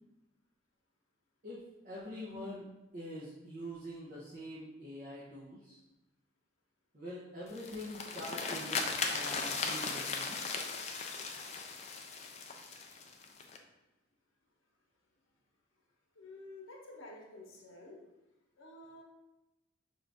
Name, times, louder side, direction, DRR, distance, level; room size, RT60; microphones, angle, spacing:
voice 1, 1.8-2.6 2.9-5.8 6.9-10.4, equal, 40° right, -8 dB, 0.8 m, -45 dB
sound 1, 7.5-13.6, left 4 dB, 35° left, 0.3 m, -38 dB
voice 2, 16.1-18.0 18.6-19.0, left 2 dB, 85° left, -1 dB, 0.9 m, -51 dB
5.5 x 2.5 x 3.4 m, 0.99 s
head